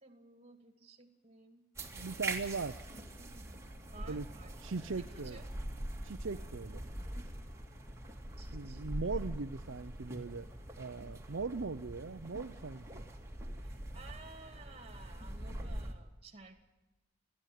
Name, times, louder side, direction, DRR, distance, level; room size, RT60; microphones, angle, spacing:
voice 1, 0.0-1.7 2.9-3.6 3.9-4.5 5.0-5.5 8.4-8.8 13.6-16.6, right 3 dB, 30° right, 7 dB, 2.3 m, -55 dB
sound 1, 1.8-15.9, right 1 dB, 15° right, 2.2 m, -43 dB
voice 2, 1.9-2.8 4.1-4.3 4.6-5.4 6.0-6.8 8.5-10.5 10.8-13.0, right 4 dB, 65° right, 7 dB, 0.6 m, -39 dB
29.5 x 10.5 x 9.3 m, 1.1 s
head